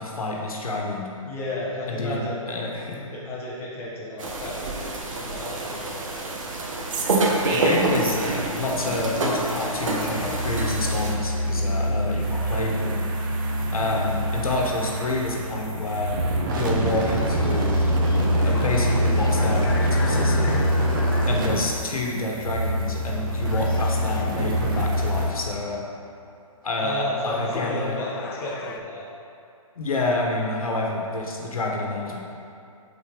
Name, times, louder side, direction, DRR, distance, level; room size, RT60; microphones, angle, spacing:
voice 1, 0.0-1.1 1.9-2.2 2.5-3.0 7.5-13.1 13.7-16.2 16.6-17.9 18.4-20.6 21.3-25.8 26.6-28.0 29.8-32.2, left 2 dB, 75° left, -1 dB, 1.2 m, -28 dB
voice 2, 1.3-2.5 2.9-6.3 26.8-29.0, left 2 dB, 10° left, -8 dB, 1.1 m, -33 dB
sound 1, 4.2-11.1, right 2 dB, 65° right, 1.2 m, -27 dB
sound 2, 5.4-8.7 8.9-25.3, equal, 35° right, 0.7 m, -25 dB
sound 3, 16.4-22.0 22.8-23.1 23.4-25.3 26.6-26.7 27.1-28.8, left 5 dB, 40° left, 0.4 m, -40 dB
5.6 x 4.1 x 5.0 m, 2.5 s
hypercardioid pair, 145°, 18 cm